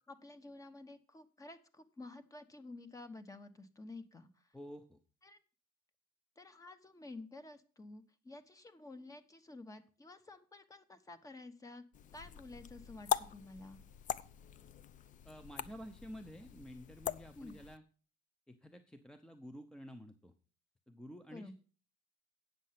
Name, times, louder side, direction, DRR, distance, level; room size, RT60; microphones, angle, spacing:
voice 1, 0.1-4.6 5.2-5.4 6.4-11.8 12.1-13.8 17.3-17.5 21.3-21.5, left 2 dB, 20° left, 10 dB, 1.1 m, -51 dB
voice 2, 4.5-5.0 15.2-17.8 18.5-20.3 20.9-21.5, equal, 5° left, 8 dB, 0.7 m, -51 dB
sound 1, 11.9-17.8, left 10 dB, 50° left, 0.5 m, -42 dB
9.0 x 6.6 x 5.8 m, 0.38 s
cardioid pair, 110°, 17 cm